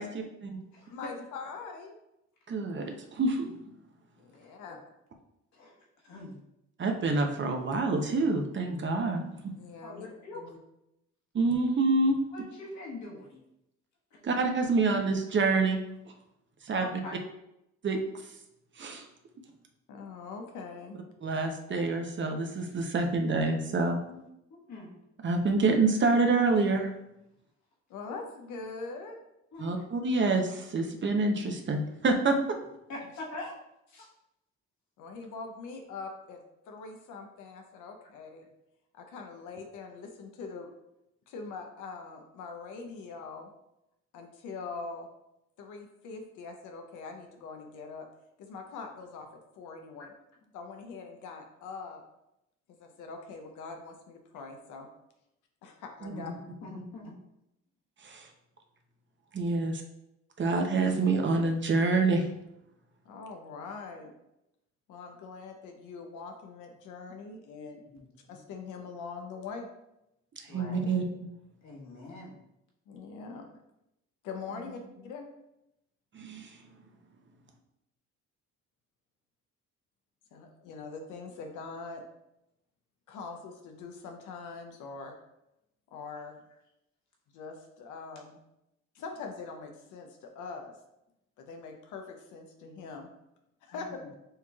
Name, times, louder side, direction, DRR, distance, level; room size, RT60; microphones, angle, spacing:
voice 1, 0.0-0.6 2.5-3.5 6.8-9.2 11.3-12.2 14.2-15.8 16.7-16.9 17.8-18.0 18.8-19.0 21.2-24.0 25.2-26.9 29.6-32.4 56.0-56.3 56.8-56.9 58.0-58.3 59.3-59.8 60.4-62.2 70.5-71.3 76.1-76.5, right 3 dB, 40° right, 3 dB, 0.7 m, -27 dB
voice 2, 0.9-1.9 4.2-4.8 9.6-10.1 10.3-10.6 19.9-21.0 27.9-29.2 35.0-36.4 36.7-38.5 38.9-40.7 41.3-43.5 44.1-45.1 45.6-48.1 48.4-49.3 49.6-50.1 50.5-52.0 52.7-54.9 55.6-56.3 59.4-59.6 63.0-64.1 64.9-67.8 68.3-69.7 72.9-73.4 74.2-75.3 80.3-82.0 83.1-85.1 85.9-86.4 87.3-88.4 89.0-90.7 91.4-93.1 93.6-94.0, left 4 dB, 85° left, 3 dB, 0.7 m, -43 dB
voice 3, 4.4-4.7 5.5-5.7 6.0-6.4 9.8-10.4 12.3-13.4 16.8-17.2 24.1-24.2 24.7-25.0 29.5-29.8 32.9-33.5 33.9-34.1 56.1-57.1 67.9-68.4 70.5-71.0 71.6-72.4 74.5-75.0 93.7-94.1, left 2 dB, 65° left, -3 dB, 1.4 m, -44 dB
6.4 x 3.0 x 2.3 m, 0.85 s
cardioid pair, 90°, 30 cm